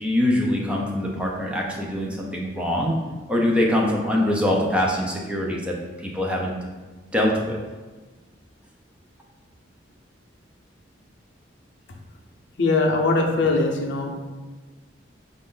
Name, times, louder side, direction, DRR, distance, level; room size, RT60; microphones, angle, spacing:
voice 1, 0.0-2.9 3.3-6.5 7.1-7.6, left 1 dB, 5° right, -3 dB, 0.6 m, -23 dB
voice 2, 12.6-14.1, left 3 dB, 70° left, 1 dB, 0.6 m, -21 dB
5.0 x 2.6 x 3.8 m, 1.3 s
head